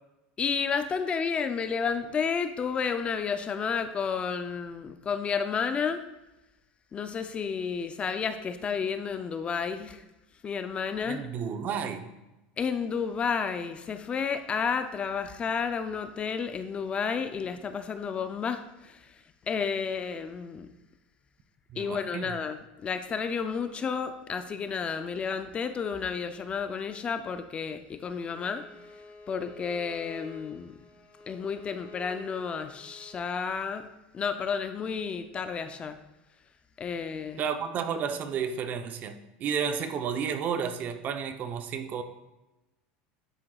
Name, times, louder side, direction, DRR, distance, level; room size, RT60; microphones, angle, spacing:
voice 1, 0.4-6.0 6.9-10.0 10.4-11.3 12.6-19.1 19.5-20.7 21.8-28.6 29.3-30.7 31.3-33.9 34.1-36.0 36.8-37.4, left 6 dB, 25° left, 9 dB, 0.4 m, -31 dB
voice 2, 11.1-12.1 21.7-22.3 37.4-42.0, right 7 dB, 40° right, 8 dB, 0.7 m, -32 dB
Bowed string instrument, 28.2-33.2, left 3 dB, 55° left, 2.7 m, -49 dB
9.7 x 7.6 x 2.3 m, 0.99 s
supercardioid pair, 130°, 5 cm